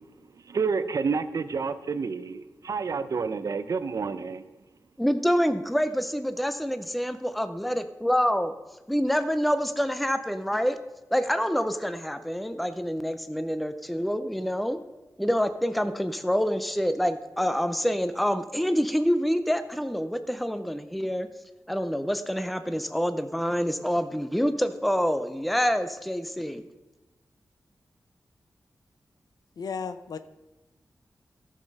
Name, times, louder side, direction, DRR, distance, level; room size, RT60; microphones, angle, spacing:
voice 1, 0.5-4.4, right 5 dB, 60° right, 0.6 m, -29 dB
voice 2, 5.0-8.5 8.9-10.8 11.1-14.8 15.2-21.3 21.7-26.6, equal, ahead, 0.5 m, -26 dB
voice 3, 29.6-30.2, left 5 dB, 80° left, 0.5 m, -34 dB
14.5 x 6.6 x 5.3 m
wide cardioid pair, 110°, 6 cm